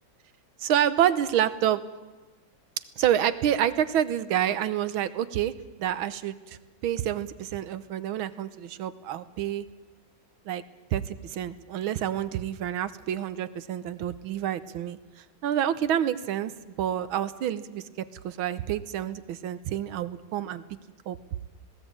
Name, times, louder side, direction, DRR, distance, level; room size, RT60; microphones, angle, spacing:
voice 1, 0.6-1.8 3.0-5.5 5.8-6.6 6.8-9.7 10.5-10.6 10.9-15.0 15.4-16.5 16.8-20.6 21.1-21.2, right 10 dB, 85° right, 14 dB, 1.7 m, -28 dB
19.5 x 17.0 x 8.8 m, 1.2 s
omnidirectional pair, 2.2 m